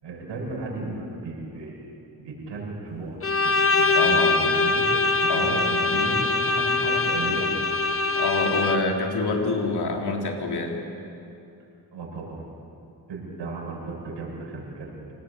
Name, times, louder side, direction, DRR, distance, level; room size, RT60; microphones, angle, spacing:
voice 1, 0.0-1.9 2.2-4.9 5.2-6.2 6.4-7.5 11.9-12.5 13.1-14.9, right 3 dB, 85° right, -2 dB, 6.9 m, -35 dB
Bowed string instrument, 3.2-9.0, left 3 dB, 30° left, 1.5 m, -23 dB
voice 2, 4.0-4.5 5.3-5.5 8.1-10.8, left 3 dB, 65° left, 1 dB, 4.0 m, -27 dB
26.0 x 19.0 x 8.2 m, 2.7 s
cardioid pair, 85°, 42 cm